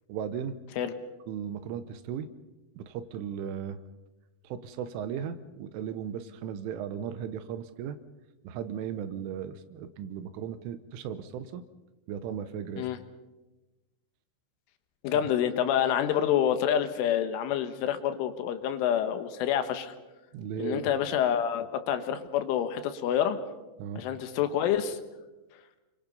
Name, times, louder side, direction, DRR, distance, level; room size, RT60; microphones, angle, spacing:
voice 1, 0.1-0.6 1.3-2.3 2.8-3.8 4.5-8.0 8.5-11.6 12.1-12.9 20.3-20.9 23.8-24.0, right 8 dB, 80° right, 11 dB, 3.5 m, -36 dB
voice 2, 15.0-19.9 20.6-23.4 24.0-25.0, left 9 dB, 80° left, 9 dB, 3.8 m, -27 dB
28.5 x 24.0 x 5.4 m, 1.1 s
omnidirectional pair, 5.6 m